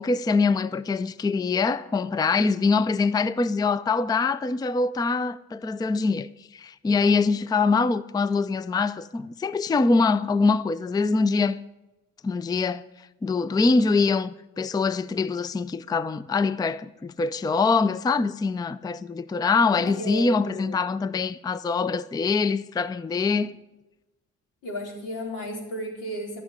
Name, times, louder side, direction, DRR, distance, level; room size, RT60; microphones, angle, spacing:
voice 1, 0.0-11.6 12.2-12.8 13.2-23.5, left 4 dB, 15° left, 0.4 m, -24 dB
voice 2, 19.8-20.8 23.1-23.4 24.6-26.4, equal, 85° left, 3.9 m, -34 dB
13.5 x 6.5 x 9.9 m
cardioid pair, 90°, 30 cm